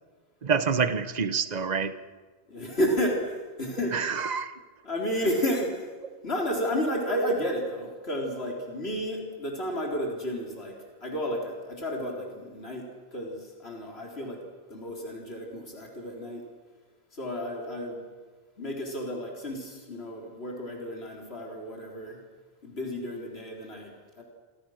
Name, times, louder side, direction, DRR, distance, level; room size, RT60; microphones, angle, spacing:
voice 1, 0.4-2.0 3.9-4.5, right 5 dB, 45° right, 11 dB, 1.2 m, -27 dB
voice 2, 2.5-4.0 4.8-5.9 6.2-10.8 11.0-14.4 14.7-16.4 17.1-18.1 18.6-22.2 22.6-24.2, equal, 90° left, 0 dB, 4.2 m, -32 dB
29.5 x 25.5 x 6.5 m, 1.5 s
omnidirectional pair, 1.0 m